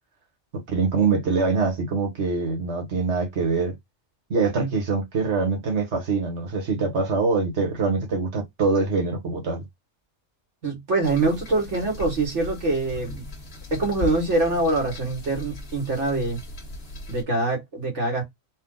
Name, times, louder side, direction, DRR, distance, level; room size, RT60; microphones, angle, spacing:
voice 1, 0.5-3.8 4.3-9.6, right 4 dB, 70° right, 1.6 m, -24 dB
voice 2, 10.6-13.3 13.7-16.4 17.1-18.2, right 2 dB, 90° right, 2.1 m, -24 dB
sound 1, 11.0-17.2, left 2 dB, 60° left, 1.5 m, -38 dB
4.2 x 2.5 x 3.8 m
omnidirectional pair, 1.2 m